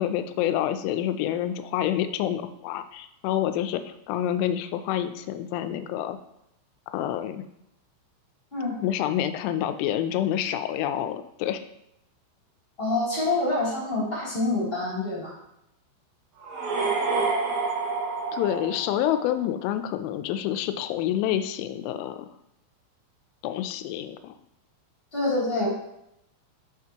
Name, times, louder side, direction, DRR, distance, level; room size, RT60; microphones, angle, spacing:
voice 1, 0.0-6.2 6.9-7.4 8.8-11.6 18.3-22.3 23.4-24.3, left 11 dB, 85° left, 10 dB, 2.9 m, -28 dB
voice 2, 12.8-15.3 25.1-25.7, left 2 dB, 20° left, -6 dB, 1.7 m, -26 dB
sound 1, 16.4-19.4, right 4 dB, 75° right, 3.4 m, -28 dB
9.4 x 6.3 x 2.9 m, 0.79 s
omnidirectional pair, 5.7 m